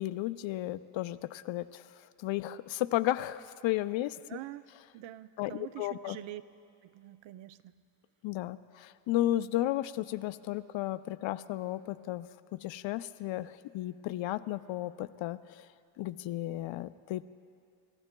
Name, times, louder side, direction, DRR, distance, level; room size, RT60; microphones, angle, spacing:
voice 1, 0.0-1.9 2.2-4.2 5.4-6.2 8.2-15.7 16.0-17.2, left 15 dB, 70° left, 14 dB, 0.6 m, -34 dB
voice 2, 4.3-4.6 4.9-6.4 6.8-7.7, right 14 dB, 70° right, 14 dB, 0.6 m, -45 dB
29.0 x 14.5 x 2.2 m, 2.4 s
cardioid pair, 80°, 48 cm